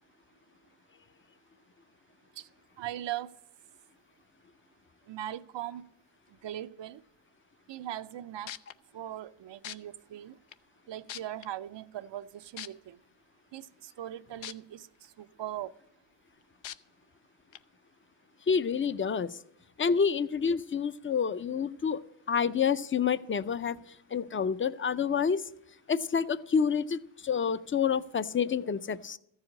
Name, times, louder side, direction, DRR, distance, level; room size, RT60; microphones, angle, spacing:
voice 1, 2.8-3.3 5.1-5.8 6.4-7.0 7.7-8.5 8.9-10.4 10.9-13.0 13.5-15.7, right 12 dB, 70° right, 0.5 m, -40 dB
sound 1, 8.1-8.2 8.5-8.7 9.6-9.8 10.5-10.6 11.1-11.5 12.6-12.7 14.4-14.5 15.0-15.1 16.6-16.8 17.5-17.6, left 11 dB, 85° left, 0.6 m, -40 dB
voice 2, 18.5-19.4 19.8-22.0 22.3-23.8 24.1-25.4 25.9-29.2, left 6 dB, 30° left, 0.4 m, -28 dB
14.0 x 4.9 x 8.4 m
cardioid pair, 65°, 45 cm